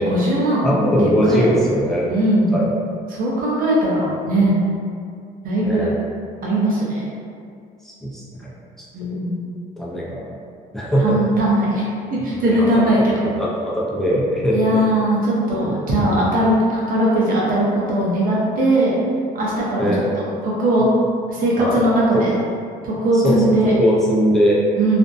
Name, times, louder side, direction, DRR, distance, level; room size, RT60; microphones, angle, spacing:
voice 1, 0.0-0.7 1.0-1.4 2.1-2.6 3.1-4.6 5.4-5.9 6.4-7.1 8.9-9.5 11.0-11.8 12.1-13.3 14.5-18.9 19.3-19.9 20.4-20.9 21.3-22.4 22.8-23.7 24.8-25.0, right 1 dB, 55° right, -6 dB, 0.8 m, -19 dB
voice 2, 0.6-2.1 2.5-2.7 5.6-5.9 7.8-8.5 8.8-8.9 9.8-10.3 10.7-11.1 12.4-14.9 15.5-15.7 19.8-20.0 21.6-21.8 23.1-24.6, equal, ahead, -7 dB, 0.5 m, -20 dB
2.5 x 2.1 x 2.5 m, 2.3 s
cardioid pair, 110°, 17 cm